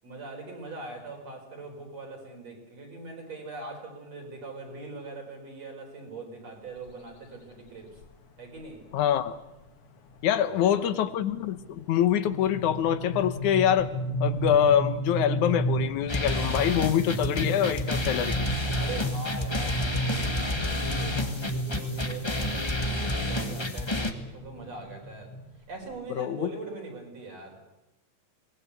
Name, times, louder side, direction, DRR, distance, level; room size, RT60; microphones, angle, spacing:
voice 1, 0.0-8.0 8.4-8.8 10.3-10.8 18.8-25.3 25.7-27.6, right 3 dB, 60° right, 1 dB, 5.9 m, -42 dB
sound 1, 6.9-7.1 8.0-8.1 8.5-8.6 8.9-9.2 9.6-26.0, right 1 dB, 55° left, 2.3 m, -33 dB
voice 2, 8.9-9.4 10.2-13.9 14.2-18.5 26.2-26.5, left 10 dB, 80° left, 12 dB, 2.5 m, -25 dB
sound 2, 16.1-24.1, left 2 dB, 20° left, 0.6 m, -30 dB
24.0 x 19.5 x 8.3 m, 0.96 s
omnidirectional pair, 3.4 m